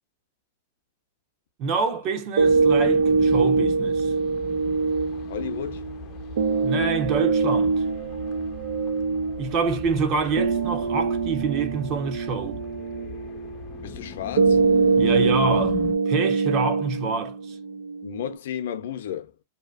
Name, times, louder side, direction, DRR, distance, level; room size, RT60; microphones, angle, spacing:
voice 1, 1.6-4.1 6.6-7.8 9.4-12.6 15.0-17.6, right 4 dB, 40° right, 0.9 m, -26 dB
sound 1, 2.4-16.0, left 6 dB, 35° left, 0.5 m, -39 dB
sound 2, 2.4-18.4, right 4 dB, 80° right, 0.6 m, -24 dB
voice 2, 5.3-5.8 13.8-14.6 18.0-19.3, left 9 dB, 75° left, 0.6 m, -33 dB
2.8 x 2.4 x 2.4 m
hypercardioid pair, 140°, 0 cm